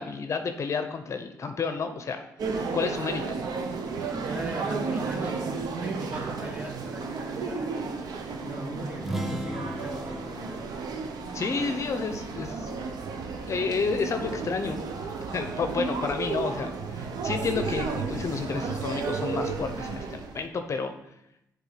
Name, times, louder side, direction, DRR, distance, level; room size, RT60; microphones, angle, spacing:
voice 1, 0.0-2.2 2.7-3.4 11.3-12.7 13.5-14.8 15.3-20.9, left 5 dB, 45° left, 7 dB, 0.6 m, -30 dB
sound 1, 2.4-20.4, right 4 dB, 70° right, 0.9 m, -33 dB
voice 2, 4.0-11.1, right 2 dB, 20° right, 1 dB, 1.7 m, -39 dB
sound 2, 9.0-12.7, right 1 dB, 5° right, 0.8 m, -37 dB
7.1 x 3.8 x 5.7 m, 0.84 s
cardioid pair, 75°, 7 cm